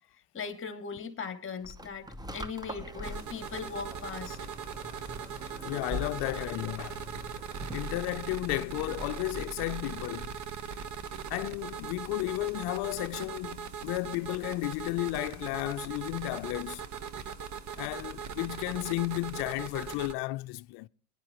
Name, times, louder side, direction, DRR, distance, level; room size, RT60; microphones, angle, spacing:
voice 1, 0.3-2.1 2.3-4.4 6.3-6.4, left 5 dB, 25° left, 2.4 m, -39 dB
sound 1, 1.6-8.0, left 1 dB, 10° right, 0.9 m, -43 dB
sound 2, 3.0-20.1, right 6 dB, 40° right, 1.2 m, -40 dB
voice 2, 5.6-7.0 7.7-10.3 11.3-16.8 17.8-20.9, left 21 dB, 60° left, 0.6 m, -33 dB
22.0 x 11.0 x 3.0 m
supercardioid pair, 100°, 44 cm